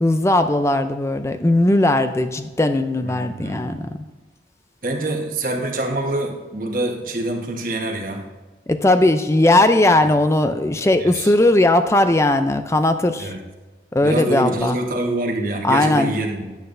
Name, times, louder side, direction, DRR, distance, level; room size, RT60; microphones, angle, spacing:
voice 1, 0.0-4.0 8.7-13.3 13.9-14.8 15.6-16.1, left 1 dB, 15° left, 9 dB, 0.4 m, -18 dB
voice 2, 3.0-3.7 4.8-8.2 11.0-11.3 13.2-13.4 14.0-16.5, right 1 dB, 50° right, 1 dB, 1.3 m, -25 dB
10.5 x 8.9 x 2.6 m, 1.2 s
head